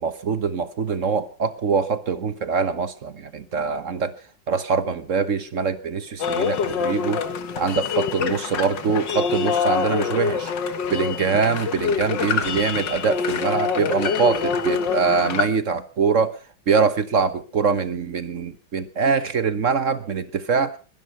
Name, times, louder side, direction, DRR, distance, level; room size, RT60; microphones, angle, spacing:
voice 1, 0.0-4.1 4.5-7.2 7.6-10.5 10.9-16.4 16.7-20.8, right 5 dB, 50° right, 13 dB, 1.0 m, -23 dB
sound 1, 6.2-15.5, left 6 dB, 60° left, 2.0 m, -25 dB
21.5 x 11.5 x 5.6 m, 0.38 s
omnidirectional pair, 2.3 m